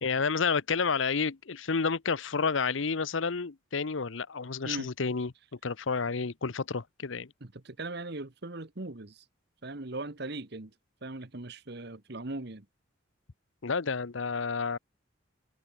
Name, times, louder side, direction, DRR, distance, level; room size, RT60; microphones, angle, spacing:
voice 1, 0.0-5.3 5.6-7.3 13.6-14.8, left 5 dB, 75° left, 0.8 m, -30 dB
voice 2, 7.4-9.2 9.6-10.7 11.0-12.6, right 2 dB, 55° right, 1.4 m, -39 dB
open air
head